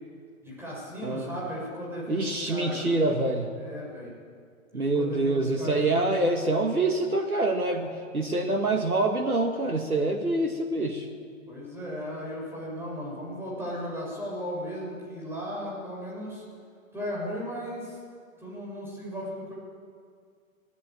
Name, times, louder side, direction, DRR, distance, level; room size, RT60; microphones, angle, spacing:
voice 1, 0.4-3.2 3.6-4.1 4.7-6.1 11.5-16.4 16.9-18.0 18.4-19.5, equal, 5° right, -5 dB, 7.2 m, -36 dB
voice 2, 1.0-1.4 2.1-3.5 4.7-11.1, right 2 dB, 90° right, 4 dB, 1.9 m, -26 dB
20.0 x 14.5 x 8.8 m, 2.1 s
figure-of-eight pair, 125°, 43 cm